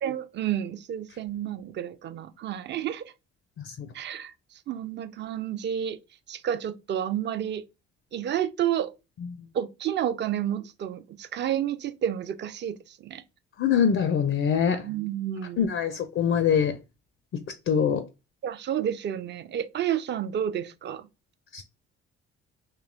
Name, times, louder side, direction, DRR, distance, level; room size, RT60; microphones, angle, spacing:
voice 1, 0.0-3.1 3.9-6.0 6.3-7.6 8.1-8.9 9.5-13.2 14.8-15.7 18.4-21.1, right 10 dB, 35° right, 0.4 m, -30 dB
voice 2, 13.6-14.8 15.6-16.7 17.7-18.0 21.5-21.6, left 7 dB, 40° left, 0.4 m, -23 dB
2.7 x 2.2 x 2.5 m
hypercardioid pair, 45°, 33 cm